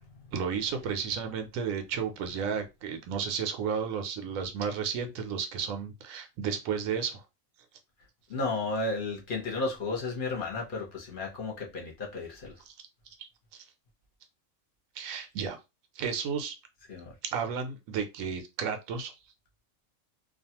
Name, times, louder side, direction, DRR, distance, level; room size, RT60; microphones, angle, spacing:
voice 1, 0.3-7.2 12.7-12.8 13.5-13.6 14.9-15.6 15.9-16.5 17.2-19.1, right 6 dB, 85° right, 1.0 m, -33 dB
voice 2, 8.3-12.5 16.9-17.1, left 3 dB, 45° left, 0.9 m, -33 dB
2.5 x 2.3 x 2.8 m
omnidirectional pair, 1.4 m